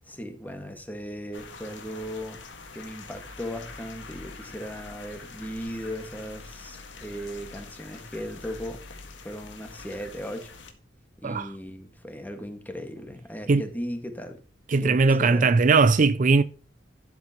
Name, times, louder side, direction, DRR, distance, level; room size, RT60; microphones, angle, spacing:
voice 1, 0.1-2.4 2.8-8.8 9.2-10.5 11.2-14.4 14.8-15.5, equal, 10° left, 1.8 m, -37 dB
sound 1, 1.3-10.7, left 4 dB, 80° left, 1.8 m, -45 dB
voice 2, 14.7-16.4, right 4 dB, 45° right, 0.4 m, -19 dB
11.5 x 8.4 x 3.0 m
head